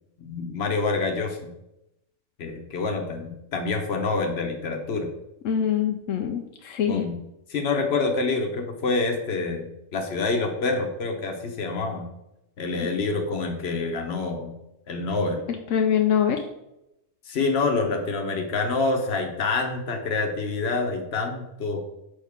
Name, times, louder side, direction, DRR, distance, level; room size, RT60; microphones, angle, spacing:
voice 1, 0.2-1.5 2.4-5.1 6.9-7.2 7.5-12.1 12.6-14.5 14.9-15.4 17.3-21.8, left 3 dB, 55° left, 4 dB, 1.2 m, -27 dB
voice 2, 5.4-7.1 12.8-12.9 15.5-16.4, left 8 dB, 80° left, 4 dB, 1.0 m, -24 dB
6.4 x 5.4 x 3.5 m, 0.86 s
omnidirectional pair, 1.3 m